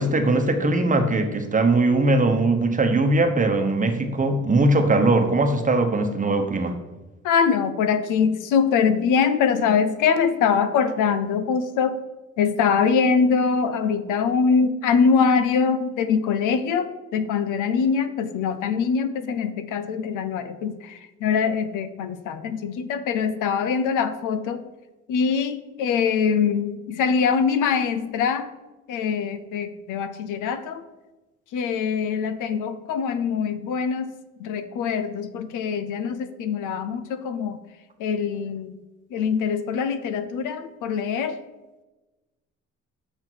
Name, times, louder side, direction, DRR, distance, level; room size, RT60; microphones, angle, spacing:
voice 1, 0.0-6.7, right 2 dB, 25° right, 5 dB, 0.9 m, -20 dB
voice 2, 7.2-12.0 12.4-24.6 25.1-28.5 28.9-30.8 31.5-34.1 34.4-37.6 38.0-38.7 39.1-41.4, left 6 dB, 90° left, 12 dB, 0.6 m, -23 dB
6.7 x 5.9 x 4.5 m, 1.1 s
cardioid pair, 90°, 30 cm